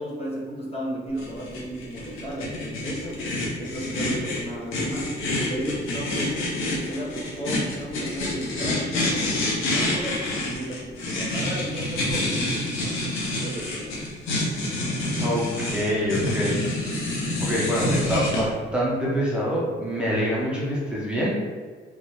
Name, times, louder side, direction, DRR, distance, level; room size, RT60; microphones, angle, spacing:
voice 1, 0.0-3.2 3.6-5.1 5.4-6.5 6.9-13.0 13.4-14.1, right 1 dB, 30° left, -5 dB, 1.0 m, -34 dB
sound 1, 1.2-18.4, left 1 dB, 85° left, 0.9 m, -27 dB
voice 2, 15.2-16.6 17.4-21.4, equal, 5° right, -6 dB, 0.9 m, -25 dB
3.2 x 2.7 x 3.0 m, 1.5 s
cardioid pair, 90°, 20 cm